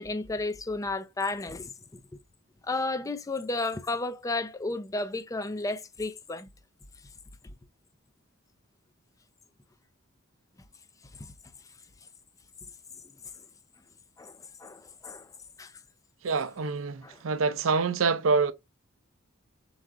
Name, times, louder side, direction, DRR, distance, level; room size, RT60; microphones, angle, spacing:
voice 1, 0.0-2.0 2.6-6.5 11.2-11.3 14.2-15.3 15.6-15.7 17.0-17.2, left 2 dB, 15° left, 0.4 m, -33 dB
voice 2, 16.2-18.5, right 4 dB, 70° right, 0.5 m, -26 dB
4.7 x 3.7 x 2.5 m
head